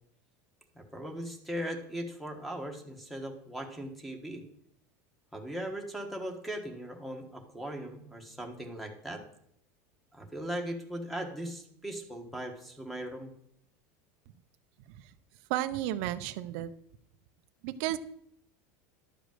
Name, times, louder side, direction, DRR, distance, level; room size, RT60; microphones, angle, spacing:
voice 1, 0.7-4.4 5.3-9.2 10.1-13.3, right 1 dB, ahead, 3 dB, 1.3 m, -39 dB
voice 2, 15.5-16.7 17.6-18.0, right 14 dB, 60° right, 11 dB, 0.6 m, -32 dB
11.5 x 5.1 x 7.6 m, 0.71 s
supercardioid pair, 160°, 8 cm